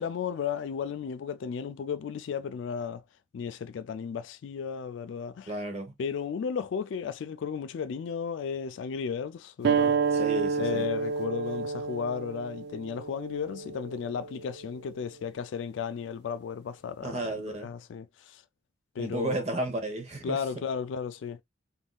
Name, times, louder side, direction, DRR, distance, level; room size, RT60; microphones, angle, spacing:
voice 1, 0.0-3.0 3.3-5.6 6.0-10.0 10.6-18.4 18.9-19.4 20.2-21.4, left 6 dB, 75° left, 0.3 m, -34 dB
voice 2, 5.5-5.9 10.1-10.8 17.0-17.7 19.0-20.4, right 2 dB, 35° right, 1.1 m, -33 dB
sound 1, 9.6-14.8, right 5 dB, 60° right, 0.3 m, -30 dB
3.5 x 2.6 x 2.3 m
head